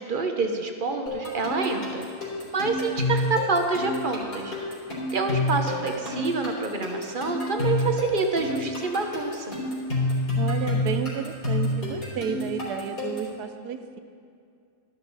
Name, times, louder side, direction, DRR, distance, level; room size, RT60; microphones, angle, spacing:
voice 1, 0.0-2.0 2.5-4.5 5.1-9.5, right 3 dB, 40° right, 4 dB, 1.0 m, -27 dB
sound 1, 1.1-13.4, left 1 dB, 80° left, 4.0 m, -29 dB
voice 2, 10.4-14.0, right 7 dB, 80° right, 9 dB, 1.3 m, -32 dB
12.5 x 12.0 x 4.1 m, 2.3 s
omnidirectional pair, 1.7 m